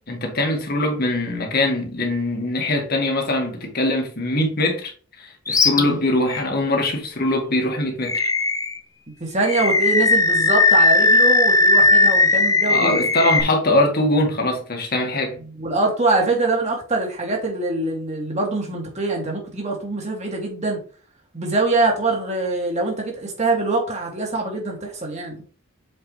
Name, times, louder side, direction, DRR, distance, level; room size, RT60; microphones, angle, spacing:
voice 1, 0.1-4.9 5.2-8.3 12.7-15.4, left 1 dB, 50° left, 1.8 m, -22 dB
Animal, 5.5-5.8 6.3-6.4 8.0-8.8 9.4-13.4, left 3 dB, 15° left, 0.7 m, -17 dB
voice 2, 9.2-13.0 15.6-20.8 21.3-25.4, right 2 dB, 35° right, 2.3 m, -23 dB
7.7 x 4.8 x 3.3 m
head